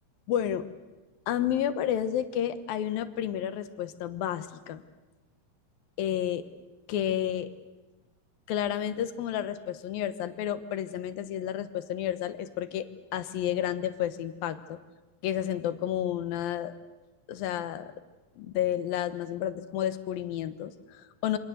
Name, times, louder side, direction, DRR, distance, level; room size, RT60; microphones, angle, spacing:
voice 1, 0.3-0.7 1.3-4.8 6.0-6.4 6.9-7.5 8.5-14.8 15.2-16.7 17.3-17.9 18.4-21.4, left 10 dB, 85° left, 11 dB, 3.0 m, -31 dB
27.5 x 25.5 x 8.0 m, 1.1 s
omnidirectional pair, 4.0 m